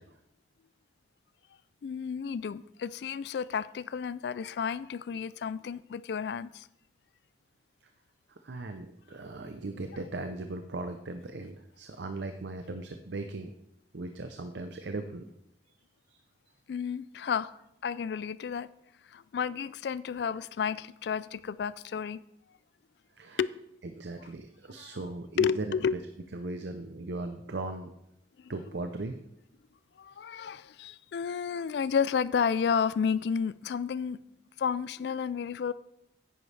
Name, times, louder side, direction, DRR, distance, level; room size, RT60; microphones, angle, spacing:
voice 1, 1.8-6.7 16.7-17.5 17.8-18.7 19.1-22.2 23.4-23.6 24.8-24.9 25.4-26.0 28.4-28.5 30.0-34.2 34.6-35.7, left 6 dB, 65° left, 0.3 m, -31 dB
voice 2, 8.4-13.5 13.9-15.2 16.1-16.2 23.2-23.4 23.9-26.0 26.3-27.9 28.5-29.2, right 2 dB, 70° right, 0.6 m, -38 dB
10.0 x 9.5 x 3.3 m
head